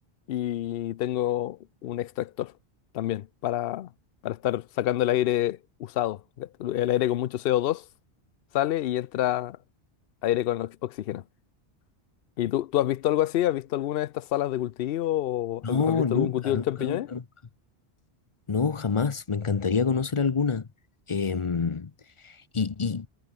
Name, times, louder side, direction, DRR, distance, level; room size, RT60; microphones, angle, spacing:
voice 1, 0.3-2.5 2.9-3.9 4.2-7.8 8.5-9.6 10.2-11.2 12.4-17.1, left 13 dB, 65° left, 0.7 m, -27 dB
voice 2, 15.6-17.2 18.5-20.7 21.1-21.9 22.2-23.1, left 5 dB, 35° left, 0.7 m, -27 dB
omnidirectional pair, 1.1 m